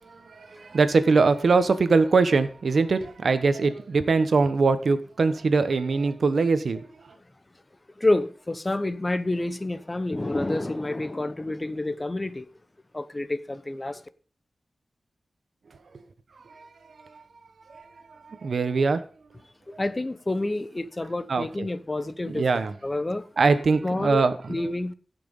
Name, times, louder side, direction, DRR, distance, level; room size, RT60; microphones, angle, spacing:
voice 1, 0.1-7.1 16.5-16.7 17.1-17.2 17.7-17.9 18.2-19.0 21.3-21.7 22.3-22.7 23.4-24.6, right 4 dB, 70° right, 1.1 m, -22 dB
voice 2, 8.0-12.5 12.9-14.0 19.7-22.4 22.8-23.3 23.8-24.9, left 2 dB, 25° left, 0.8 m, -28 dB
16.5 x 6.1 x 5.5 m
wide cardioid pair, 95°, 0 cm